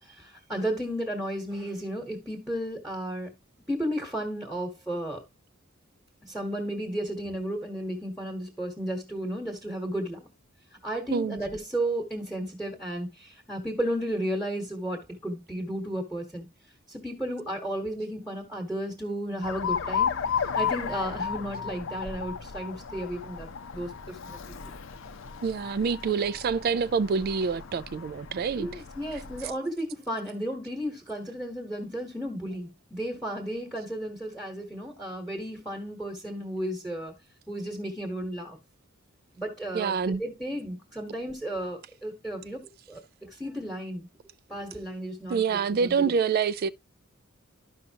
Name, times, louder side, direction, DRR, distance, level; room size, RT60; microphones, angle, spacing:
voice 1, 0.0-3.3 3.7-5.2 6.2-10.3 10.8-16.4 16.9-20.1 20.5-24.4 24.6-24.7 28.6-37.1 37.5-38.6 39.3-42.6 42.9-44.1 44.5-46.1, right 1 dB, ahead, 1.2 m, -33 dB
Alarm, 19.4-29.5, left 7 dB, 65° left, 0.7 m, -34 dB
voice 2, 25.4-28.7 39.7-40.2 45.3-46.7, right 5 dB, 45° right, 0.3 m, -26 dB
12.0 x 5.4 x 2.8 m
head